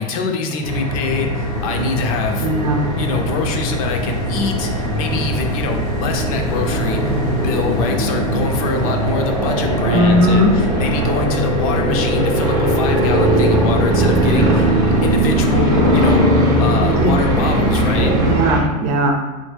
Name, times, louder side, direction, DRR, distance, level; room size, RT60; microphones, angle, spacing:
voice 1, 0.0-2.5 3.0-14.7 15.0-16.3 16.6-18.1, left 4 dB, 60° left, 4 dB, 0.5 m, -24 dB
sound 1, 0.6-18.4, equal, 80° left, 0.9 m, -24 dB
sound 2, 1.4-18.6, right 1 dB, 15° right, 0.4 m, -20 dB
voice 2, 2.4-2.8 9.8-10.5 16.9-17.1 18.2-19.1, equal, 60° right, 2 dB, 0.6 m, -17 dB
3.6 x 2.1 x 3.2 m, 1.1 s
supercardioid pair, 160°, 21 cm